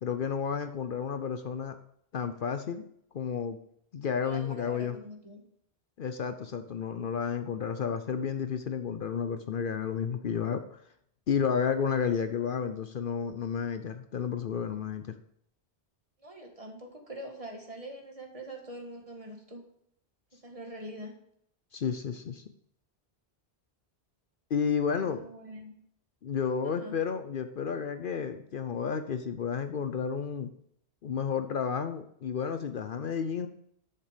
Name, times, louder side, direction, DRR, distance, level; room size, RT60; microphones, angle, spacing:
voice 1, 0.0-1.8 2.1-2.9 3.1-3.6 3.9-5.0 6.0-10.8 11.3-15.1 21.7-22.4 24.5-25.2 26.2-30.5 31.0-33.5, left 7 dB, 60° left, 9 dB, 0.8 m, -31 dB
voice 2, 4.2-5.4 16.2-19.6 20.4-21.2 24.9-25.8 26.6-27.0, right 1 dB, 35° right, 2 dB, 1.8 m, -44 dB
10.5 x 6.7 x 5.0 m, 0.70 s
omnidirectional pair, 1.1 m